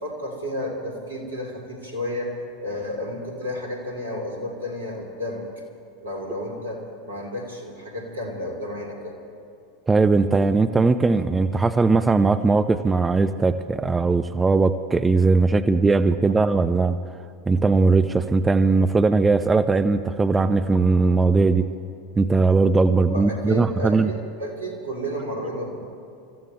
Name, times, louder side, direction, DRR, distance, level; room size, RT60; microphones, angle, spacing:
voice 1, 0.0-2.3 2.6-5.4 6.0-9.2 23.1-25.8, left 1 dB, 80° right, 0 dB, 3.1 m, -31 dB
voice 2, 9.9-17.0 17.5-21.7 22.2-24.1, right 3 dB, 15° right, 10 dB, 0.6 m, -19 dB
27.5 x 14.5 x 3.2 m, 2.6 s
figure-of-eight pair, 80°, 0 cm